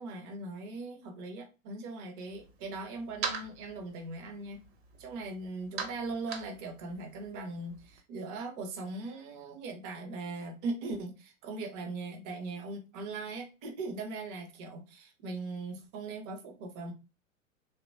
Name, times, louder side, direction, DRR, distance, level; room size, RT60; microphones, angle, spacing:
voice 1, 0.0-4.6 5.0-16.9, right 3 dB, 25° right, 0.4 m, -40 dB
sound 1, 2.3-8.0, right 5 dB, 50° right, 0.7 m, -43 dB
2.8 x 2.1 x 2.5 m
figure-of-eight pair, 95°, 39 cm